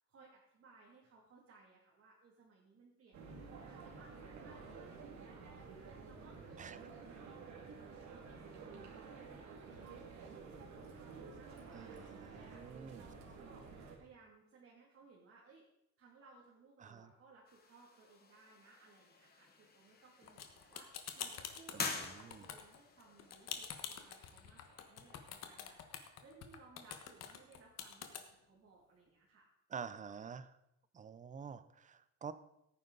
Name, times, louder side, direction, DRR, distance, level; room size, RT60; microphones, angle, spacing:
voice 1, 0.1-13.7 14.0-15.6 16.0-25.8 26.2-29.5, right 4 dB, 45° right, -4 dB, 2.6 m, -63 dB
sound 1, 3.1-14.0, right 4 dB, 65° right, 2.4 m, -51 dB
voice 2, 11.7-13.1 16.8-17.1 21.7-21.8 22.2-22.4 29.7-30.5 30.9-32.3, right 6 dB, 25° right, 14 dB, 0.5 m, -48 dB
sound 2, 17.4-25.9, left 4 dB, 30° left, 1.6 m, -49 dB
sound 3, 20.3-28.2, left 8 dB, 60° left, 1.4 m, -46 dB
16.5 x 9.4 x 3.9 m, 0.82 s
cardioid pair, 170°, 30 cm